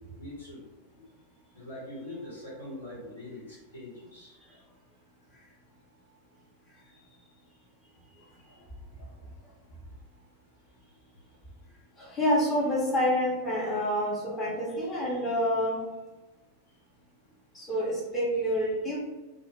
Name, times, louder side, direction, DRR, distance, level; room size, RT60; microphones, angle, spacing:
voice 1, 0.2-0.6 1.5-4.3, left 1 dB, 75° left, -8 dB, 1.2 m, -42 dB
voice 2, 12.0-15.8 17.5-19.0, equal, 20° left, -6 dB, 0.7 m, -28 dB
2.1 x 2.0 x 3.1 m, 1.1 s
figure-of-eight pair, 90°, 0 cm